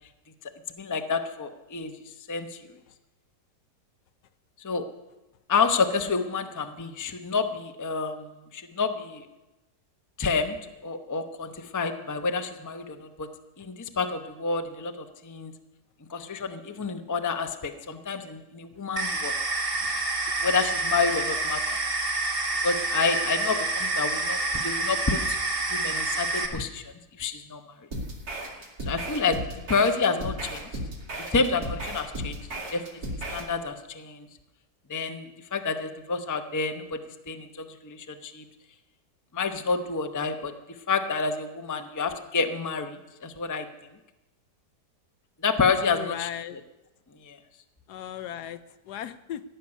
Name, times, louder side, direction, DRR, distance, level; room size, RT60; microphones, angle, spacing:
voice 1, 0.8-1.9 2.3-2.5 4.6-4.9 5.5-9.2 10.2-10.6 10.8-13.3 13.6-15.5 16.1-19.3 20.4-21.8 22.6-25.2 25.7-26.8 27.2-27.6 28.9-29.4 29.7-30.7 31.3-32.4 32.7-32.8 33.3-34.3 34.9-37.0 37.3-37.5 37.8-38.4 39.3-40.5 40.9-43.0 43.2-43.7 45.4-46.3 47.3-47.4, left 4 dB, 20° left, 7 dB, 0.5 m, -28 dB
sound 1, 19.0-26.5, right 2 dB, 35° right, 1.4 m, -28 dB
sound 2, 27.9-33.5, right 1 dB, 65° right, 2.8 m, -35 dB
voice 2, 45.8-46.6 47.9-48.6 48.9-49.4, left 11 dB, 75° left, 13 dB, 1.2 m, -36 dB
15.5 x 6.7 x 9.7 m, 0.99 s
omnidirectional pair, 1.8 m